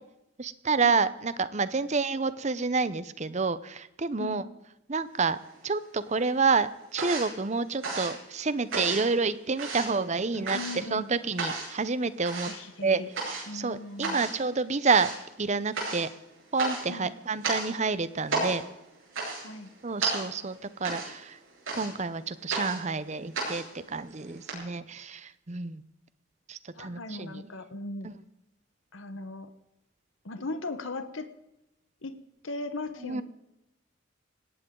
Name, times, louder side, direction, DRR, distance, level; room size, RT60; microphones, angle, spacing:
voice 1, 0.4-4.4 4.9-5.4 5.6-10.6 10.9-12.5 12.8-13.0 13.3-15.1 15.4-16.1 16.5-18.6 19.8-21.4 21.7-25.8 26.5-27.4 28.0-28.1 33.0-33.2, right 4 dB, 35° right, 15 dB, 0.7 m, -28 dB
sound 1, 5.2-6.0 6.3-24.5, right 3 dB, 80° right, 6.9 m, -35 dB
voice 2, 10.3-11.1 12.5-13.1 13.5-14.2 16.9-17.1 19.4-19.7 26.8-28.1 28.9-29.5 30.2-31.3 32.0-32.2 32.4-33.2, left 2 dB, 75° left, 10 dB, 1.2 m, -38 dB
20.0 x 17.0 x 3.9 m, 0.88 s
head